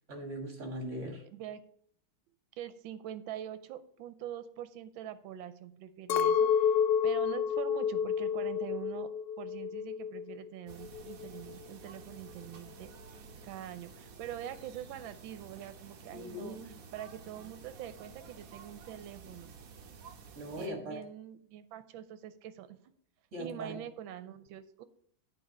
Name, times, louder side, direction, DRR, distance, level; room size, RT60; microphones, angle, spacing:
voice 1, 0.1-1.2 16.1-16.7 20.4-21.0 23.3-23.8, equal, 40° right, 2 dB, 1.8 m, -40 dB
voice 2, 1.2-1.6 2.6-6.7 7.0-9.1 9.4-19.5 20.5-22.8 23.4-24.8, right 11 dB, 80° right, 11 dB, 1.4 m, -44 dB
Chink clink, 6.1-10.5 10.7-11.5, left 7 dB, 80° left, 0.8 m, -30 dB
sound 1, 10.7-20.7, right 5 dB, 55° right, 1.0 m, -52 dB
8.7 x 4.6 x 5.4 m, 0.66 s
omnidirectional pair, 2.2 m